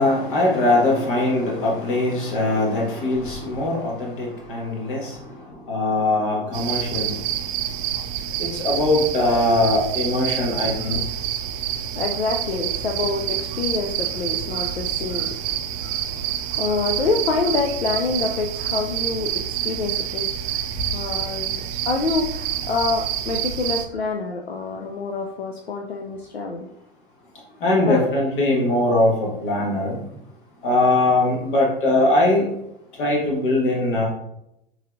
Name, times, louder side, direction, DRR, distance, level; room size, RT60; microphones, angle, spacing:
voice 1, 0.0-5.2 5.7-7.2 8.4-11.0 27.6-30.0 30.6-32.5 33.0-34.1, left 2 dB, 55° left, -2 dB, 1.7 m, -21 dB
sound 1, 6.5-23.9, right 10 dB, 35° right, 0.5 m, -27 dB
voice 2, 11.6-20.6 20.9-26.7 27.9-28.1, left 4 dB, 85° left, 3 dB, 0.5 m, -27 dB
6.3 x 3.2 x 2.6 m, 0.83 s
figure-of-eight pair, 90°, 31 cm